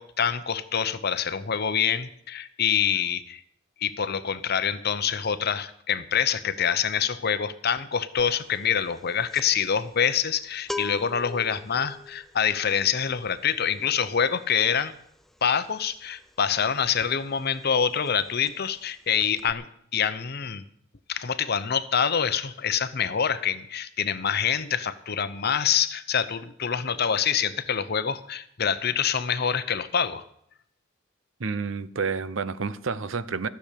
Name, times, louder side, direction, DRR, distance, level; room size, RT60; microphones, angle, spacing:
voice 1, 0.0-3.4 3.8-14.9 15.4-19.6 19.9-20.6 21.1-30.2, left 7 dB, 50° left, 0.8 m, -26 dB
sound 1, 8.2-8.5 8.7-17.3 17.6-17.8 18.1-18.9 19.2-19.5, left 3 dB, ahead, 0.5 m, -41 dB
voice 2, 31.4-33.5, right 5 dB, 75° right, 0.7 m, -29 dB
15.0 x 7.0 x 8.5 m
head